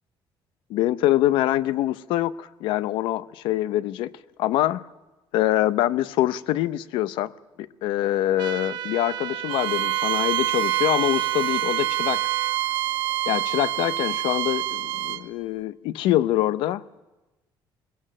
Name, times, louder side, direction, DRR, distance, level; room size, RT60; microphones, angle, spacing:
voice 1, 0.7-4.1 4.4-4.8 5.3-7.3 7.6-12.2 13.3-17.0, left 14 dB, 85° left, 0.7 m, -24 dB
sound 1, 8.4-12.6, right 12 dB, 60° right, 0.9 m, -34 dB
Bowed string instrument, 9.5-15.2, right 15 dB, 80° right, 1.1 m, -26 dB
21.5 x 20.5 x 7.7 m
cardioid pair, 165°, 8 cm